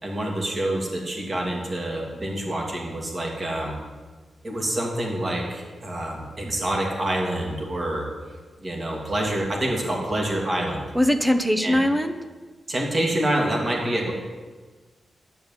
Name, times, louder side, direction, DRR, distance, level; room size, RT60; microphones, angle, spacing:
voice 1, 0.0-3.8 4.4-8.1 8.6-10.8 11.6-11.8 12.7-14.1, right 1 dB, 30° right, -1 dB, 2.6 m, -27 dB
voice 2, 10.9-12.2, left 1 dB, 5° right, 7 dB, 0.9 m, -21 dB
11.0 x 9.7 x 7.3 m, 1.4 s
wide cardioid pair, 140°, 0 cm